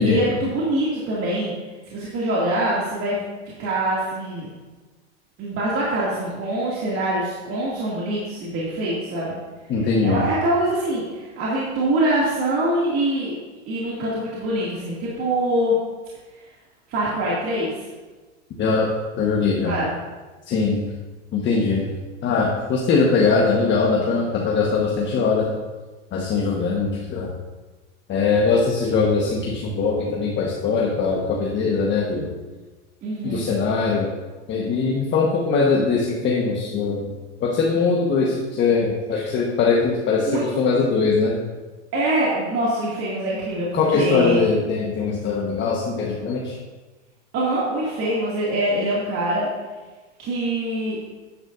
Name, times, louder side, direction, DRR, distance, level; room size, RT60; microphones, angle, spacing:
voice 1, 0.0-1.5 1.9-3.2 3.6-4.5 5.4-9.4 10.0-13.3 13.7-15.8 16.9-17.7 19.6-19.9 33.0-33.4 40.2-40.5 41.9-44.4 47.3-49.5 50.2-51.0, right 1 dB, 40° right, -7 dB, 2.5 m, -24 dB
voice 2, 9.7-10.2 18.6-19.7 20.5-20.8 21.3-21.9 22.2-25.5 26.1-27.3 28.1-32.4 33.2-34.1 34.5-37.1 37.4-41.4 43.7-46.6, left 4 dB, 30° left, -2 dB, 1.4 m, -21 dB
11.0 x 9.9 x 2.6 m, 1.3 s
supercardioid pair, 120°, 35 cm